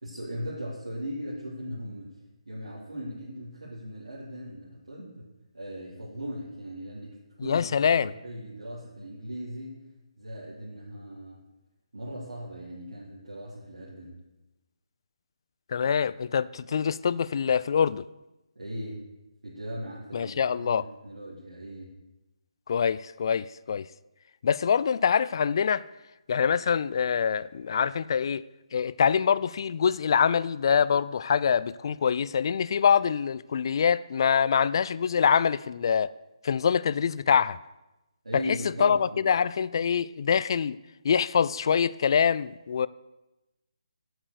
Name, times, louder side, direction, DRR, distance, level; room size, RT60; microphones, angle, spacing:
voice 1, 0.0-2.1 2.4-5.3 5.5-9.8 10.2-11.4 11.9-14.1 18.5-19.0 19.4-21.9 38.2-39.2, equal, 85° right, 3.2 m, -38 dB
voice 2, 7.4-8.1 15.7-18.1 20.1-20.9 22.7-23.9 24.4-25.8 26.3-28.4 28.7-36.1 36.4-37.6 38.3-40.8 41.0-42.9, left 7 dB, 45° left, 0.3 m, -25 dB
8.1 x 7.8 x 6.5 m
figure-of-eight pair, 155°, 3 cm